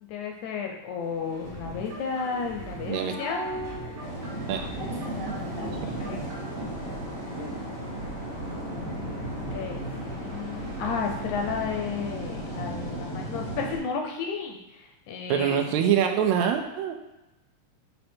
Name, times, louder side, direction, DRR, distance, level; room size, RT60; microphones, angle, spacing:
voice 1, 0.0-3.4 4.5-4.7 5.5-6.2 9.5-15.7, left 5 dB, 75° left, 2 dB, 1.9 m, -33 dB
sound 1, 1.0-11.8, equal, 25° right, 1.4 m, -40 dB
sound 2, 1.4-6.6, right 3 dB, 55° right, 2.3 m, -43 dB
sound 3, 4.0-13.8, right 1 dB, 50° left, 0.7 m, -35 dB
voice 2, 15.3-16.9, right 8 dB, 85° right, 4 dB, 1.6 m, -24 dB
7.8 x 3.3 x 4.3 m, 0.99 s
omnidirectional pair, 3.9 m